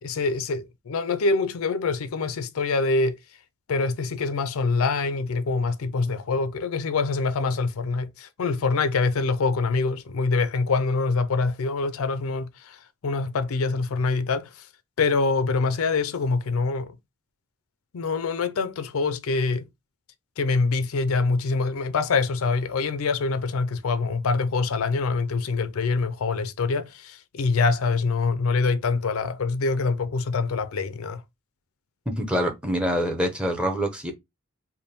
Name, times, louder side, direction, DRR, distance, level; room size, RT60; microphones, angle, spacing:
voice 1, 0.0-3.2 3.7-14.7 15.0-16.9 17.9-19.7 20.4-31.2, left 4 dB, 70° left, 0.5 m, -25 dB
voice 2, 32.1-34.1, equal, 5° right, 0.7 m, -25 dB
3.4 x 2.2 x 4.1 m
head